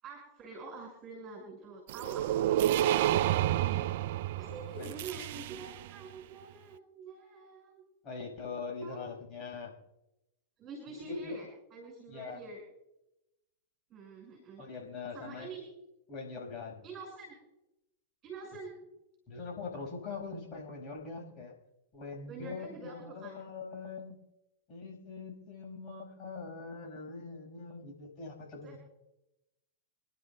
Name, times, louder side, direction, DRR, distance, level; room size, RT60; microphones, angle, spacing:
voice 1, 0.0-3.8 4.4-7.8 8.8-9.0 10.6-12.6 13.9-14.6 15.1-15.6 16.8-17.3 18.2-18.8 22.3-23.3 28.6-28.8, right 4 dB, 30° right, 1 dB, 5.6 m, -46 dB
sound 1, 1.9-5.9, right 12 dB, 55° right, 0.3 m, -30 dB
voice 2, 8.0-9.7 11.0-11.4 12.1-12.4 14.6-15.5 16.1-16.8 19.3-21.5 21.9-24.2 24.7-28.8, left 4 dB, 35° left, -1 dB, 5.5 m, -42 dB
28.5 x 11.5 x 2.3 m, 0.92 s
figure-of-eight pair, 100°, 0 cm